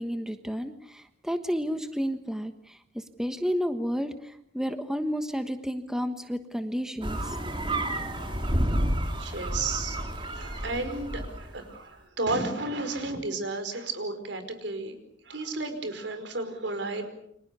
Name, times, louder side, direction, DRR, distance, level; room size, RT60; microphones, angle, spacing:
voice 1, 0.0-7.4, equal, 5° right, 8 dB, 1.3 m, -31 dB
sound 1, 7.0-11.6, right 1 dB, 25° right, 3.6 m, -30 dB
voice 2, 9.1-14.9 15.2-17.1, right 2 dB, 65° right, 8 dB, 5.1 m, -33 dB
30.0 x 25.5 x 6.9 m, 0.72 s
head